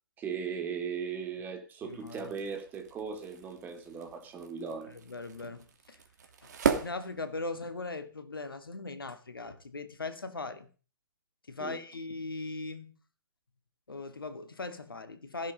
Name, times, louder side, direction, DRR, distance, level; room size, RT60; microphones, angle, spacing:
voice 1, 0.2-4.9 11.6-11.8, right 6 dB, 15° right, 3.1 m, -38 dB
voice 2, 1.8-2.3 4.9-6.0 6.4-6.5 6.8-10.7 11.5-13.0 13.9-15.5, left 3 dB, 75° left, 2.4 m, -39 dB
sound 1, 1.9-7.9, right 7 dB, 50° right, 2.6 m, -37 dB
15.5 x 10.5 x 5.2 m
figure-of-eight pair, 135°, 12 cm